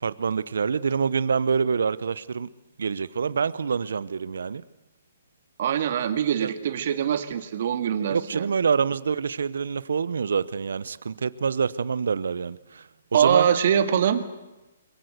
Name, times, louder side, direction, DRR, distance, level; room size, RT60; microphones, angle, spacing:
voice 1, 0.0-2.5 2.8-4.6 6.4-6.5 8.1-13.5, right 6 dB, 80° right, 17 dB, 0.8 m, -26 dB
voice 2, 5.6-8.5 13.1-14.3, right 8 dB, 50° right, 10 dB, 2.0 m, -23 dB
23.0 x 22.0 x 8.1 m, 1.1 s
hypercardioid pair, 155°, 0 cm